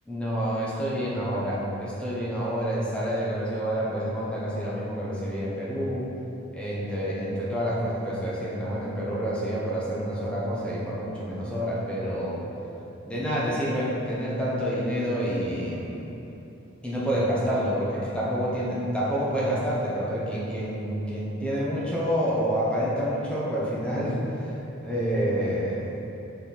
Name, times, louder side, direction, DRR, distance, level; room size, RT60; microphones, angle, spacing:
voice 1, 0.1-6.1 6.5-12.5 13.0-16.0 16.8-24.5 24.8-25.9, equal, 5° left, -7 dB, 1.0 m, -28 dB
5.9 x 4.4 x 4.2 m, 2.9 s
head